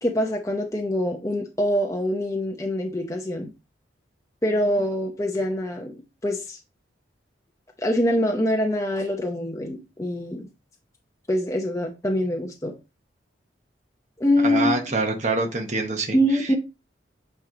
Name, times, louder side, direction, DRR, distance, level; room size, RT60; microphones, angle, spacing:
voice 1, 0.0-3.5 4.4-6.6 7.8-10.5 11.3-12.7 14.2-14.8 16.1-16.6, left 1 dB, 15° left, 1 dB, 0.7 m, -24 dB
voice 2, 14.4-16.5, right 3 dB, 40° right, 3 dB, 1.0 m, -26 dB
9.0 x 3.1 x 3.8 m, 0.28 s
head